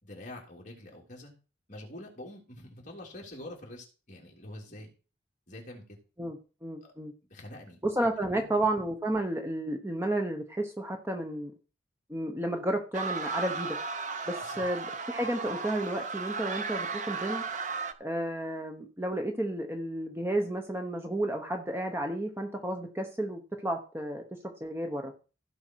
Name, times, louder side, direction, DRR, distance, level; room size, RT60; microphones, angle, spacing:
voice 1, 0.0-1.3 1.7-4.9 5.5-5.8 6.8-6.9 7.3-7.8 8.3-8.5 14.4-14.6, left 1 dB, 40° left, -1 dB, 3.1 m, -46 dB
voice 2, 6.2-7.1 7.8-11.5 12.1-13.8 14.3-17.4 18.0-25.1, right 1 dB, 10° right, 4 dB, 1.0 m, -32 dB
sound 1, 12.9-17.9, right 4 dB, 40° right, 0.8 m, -35 dB
16.0 x 5.5 x 4.6 m, 0.35 s
head